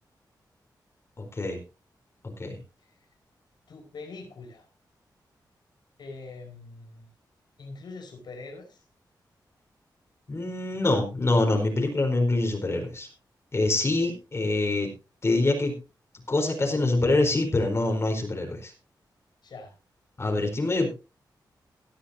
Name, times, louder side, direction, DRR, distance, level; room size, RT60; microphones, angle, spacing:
voice 1, 1.2-1.6 2.2-2.6 10.3-13.1 13.5-14.9 15.2-15.8 16.3-18.7 20.2-20.9, left 2 dB, 35° left, 2 dB, 4.2 m, -25 dB
voice 2, 3.7-4.7 6.0-7.1 7.6-8.8 14.0-14.1 19.4-19.7, left 3 dB, 75° left, 2 dB, 5.1 m, -43 dB
18.5 x 11.5 x 2.8 m, 0.30 s
wide cardioid pair, 105°, 8 cm